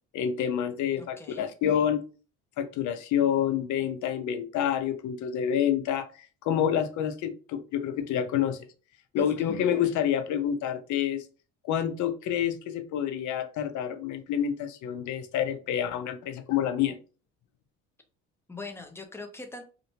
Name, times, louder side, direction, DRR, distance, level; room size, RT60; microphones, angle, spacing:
voice 1, 0.1-2.0 2.6-8.6 9.1-11.2 11.6-17.0, left 9 dB, 60° left, 8 dB, 0.6 m, -28 dB
voice 2, 1.0-1.4 9.1-9.5 18.5-19.6, left 3 dB, 5° left, 4 dB, 0.6 m, -42 dB
2.6 x 2.1 x 2.8 m, 0.37 s
supercardioid pair, 75°, 34 cm